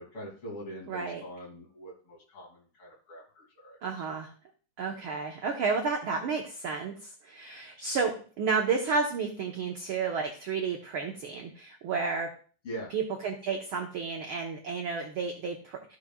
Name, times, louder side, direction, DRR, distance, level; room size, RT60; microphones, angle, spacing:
voice 1, 0.0-3.8 12.6-12.9, right 1 dB, 50° left, -2 dB, 3.4 m, -43 dB
voice 2, 0.9-1.2 3.8-4.3 4.8-12.3 12.9-16.0, right 5 dB, 70° right, 2 dB, 1.3 m, -31 dB
14.0 x 5.9 x 2.3 m, 0.40 s
omnidirectional pair, 3.4 m